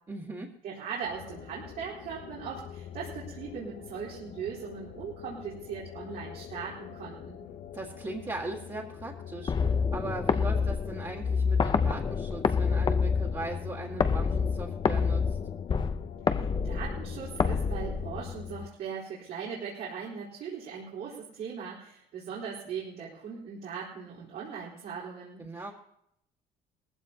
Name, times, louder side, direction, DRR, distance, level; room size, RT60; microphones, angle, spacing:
voice 1, 0.1-0.5 7.7-15.4 25.4-25.7, right 2 dB, 25° right, -5 dB, 2.0 m, -39 dB
voice 2, 0.6-7.4 16.3-25.4, right 6 dB, 75° right, -6 dB, 4.0 m, -39 dB
sound 1, 1.0-18.7, left 9 dB, 60° left, 0.9 m, -44 dB
sound 2, 9.5-18.5, left 5 dB, 30° left, 0.7 m, -28 dB
19.5 x 15.0 x 2.9 m, 0.75 s
cardioid pair, 110°, 17 cm